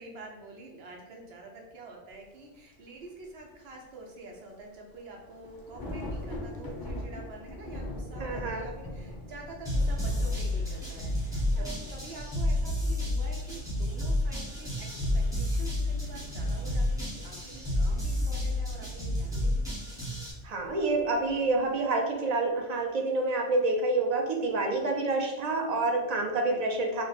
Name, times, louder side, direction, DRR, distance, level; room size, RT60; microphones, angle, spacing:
voice 1, 0.0-19.6 21.6-21.7 26.4-26.6, right 2 dB, 70° right, 0 dB, 0.9 m, -47 dB
sound 1, 2.7-2.8 3.2-3.3 4.8-4.9 5.1-21.8, left 1 dB, 35° left, 0.4 m, -43 dB
voice 2, 8.2-8.7 11.6-11.7 20.4-27.0, right 2 dB, 50° right, 2 dB, 0.6 m, -28 dB
sound 2, 9.6-20.3, left 1 dB, 5° right, 0.9 m, -30 dB
3.0 x 2.1 x 4.0 m, 1.1 s
omnidirectional pair, 1.1 m